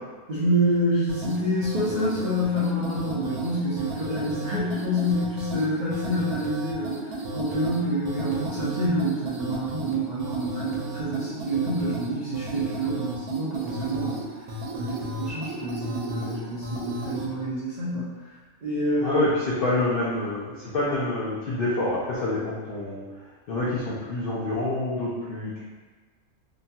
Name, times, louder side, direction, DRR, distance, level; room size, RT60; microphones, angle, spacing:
voice 1, 0.3-14.2 14.7-18.1 18.6-19.2, equal, 60° right, -10 dB, 0.4 m, -27 dB
sound 1, 1.1-17.3, right 1 dB, 90° right, 1.1 m, -35 dB
voice 2, 19.0-23.0 23.5-25.6, left 2 dB, 70° left, -8 dB, 0.5 m, -27 dB
2.9 x 2.2 x 2.7 m, 1.4 s
omnidirectional pair, 1.5 m